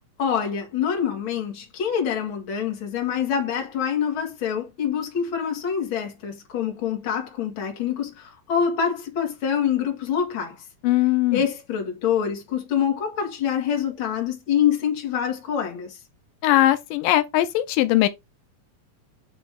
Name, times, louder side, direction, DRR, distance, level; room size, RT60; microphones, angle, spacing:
voice 1, 0.2-10.7 11.3-16.0, left 8 dB, 45° left, 2.2 m, -25 dB
voice 2, 10.8-11.4 16.4-18.1, left 15 dB, 85° left, 2.2 m, -20 dB
9.0 x 3.0 x 3.5 m
omnidirectional pair, 3.8 m